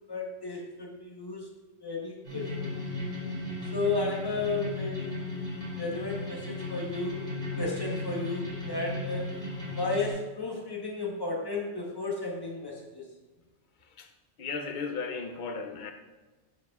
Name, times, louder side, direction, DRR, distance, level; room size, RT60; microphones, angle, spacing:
voice 1, 0.1-1.5 1.8-2.8 3.7-5.4 5.7-7.2 7.6-9.3 9.7-13.0, left 3 dB, 20° left, -1 dB, 1.1 m, -33 dB
sound 1, 2.2-10.1, left 2 dB, 50° right, 2.0 m, -35 dB
voice 2, 13.8-14.1 14.4-15.9, left 4 dB, 50° left, 5 dB, 0.8 m, -36 dB
9.4 x 5.5 x 2.4 m, 1.2 s
omnidirectional pair, 1.2 m